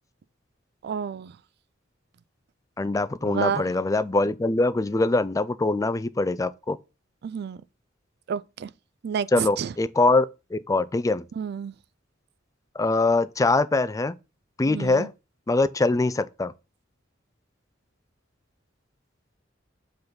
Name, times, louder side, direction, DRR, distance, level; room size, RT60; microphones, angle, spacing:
voice 1, 0.8-1.3 3.2-3.8 7.2-7.6 8.3-8.7 9.0-9.7 11.4-11.7 14.6-15.1, right 7 dB, 60° right, 0.3 m, -30 dB
voice 2, 2.8-6.8 9.3-10.3 10.5-11.2 12.8-14.1 14.6-15.1 15.5-16.5, left 2 dB, 15° left, 0.4 m, -23 dB
5.5 x 3.9 x 5.9 m
head